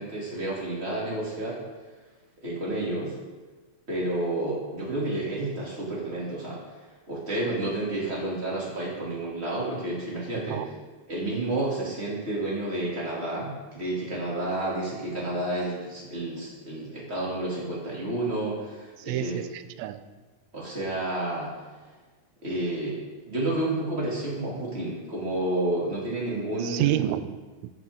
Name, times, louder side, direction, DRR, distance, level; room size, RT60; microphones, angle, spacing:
voice 1, 0.0-1.6 2.4-3.1 3.9-6.6 7.1-10.7 11.1-19.4 20.5-21.5 22.4-27.1, right 2 dB, 20° right, -6 dB, 2.9 m, -30 dB
voice 2, 19.1-20.0 26.6-27.7, right 14 dB, 80° right, 12 dB, 1.8 m, -29 dB
13.5 x 7.5 x 3.8 m, 1.3 s
omnidirectional pair, 3.4 m